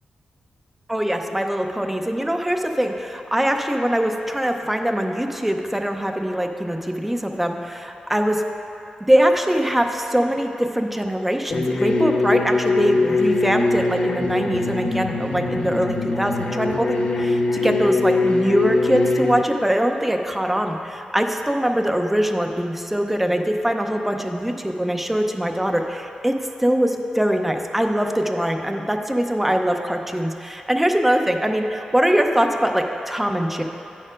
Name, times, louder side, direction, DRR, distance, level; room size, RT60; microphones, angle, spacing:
voice 1, 0.9-8.4 9.0-26.3 26.6-33.6, equal, 5° right, 4 dB, 0.5 m, -22 dB
sound 1, 11.5-19.4, left 3 dB, 55° left, 0.6 m, -22 dB
9.6 x 4.4 x 5.1 m, 2.8 s
cardioid pair, 90°, 2 cm